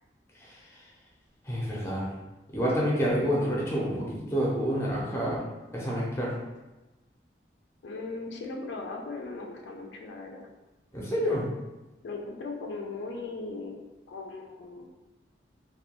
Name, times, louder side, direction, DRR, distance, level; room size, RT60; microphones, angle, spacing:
voice 1, 1.5-2.1 2.5-5.4 5.7-6.3 10.9-11.4, equal, 15° left, -5 dB, 0.5 m, -28 dB
voice 2, 7.8-10.5 12.0-13.8 14.1-14.8, left 3 dB, 80° left, 1 dB, 0.3 m, -38 dB
2.2 x 2.2 x 2.9 m, 1.1 s
head